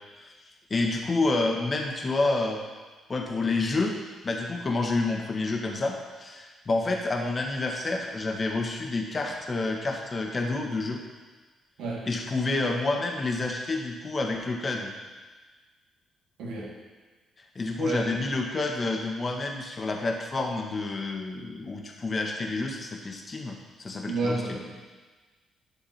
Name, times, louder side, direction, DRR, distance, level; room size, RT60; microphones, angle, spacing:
voice 1, 0.7-2.6 3.1-3.9 4.2-11.0 12.0-14.9 17.5-24.6, left 3 dB, 40° left, 1 dB, 1.7 m, -29 dB
voice 2, 16.4-16.7 17.8-18.2 24.0-24.7, right 2 dB, 75° right, -4 dB, 2.4 m, -30 dB
12.0 x 6.8 x 4.4 m, 1.3 s
hypercardioid pair, 50°, 0 cm